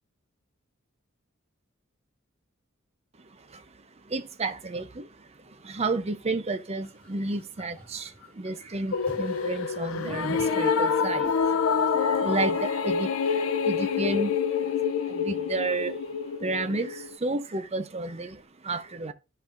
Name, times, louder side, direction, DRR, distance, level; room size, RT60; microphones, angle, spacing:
voice 1, 3.3-3.6 4.0-19.1, right 2 dB, 30° right, 0.6 m, -32 dB
sound 1, 6.8-12.2, equal, 5° left, 4.0 m, -51 dB
sound 2, 8.9-17.2, left 6 dB, 90° left, 0.5 m, -27 dB
14.0 x 5.4 x 2.5 m
head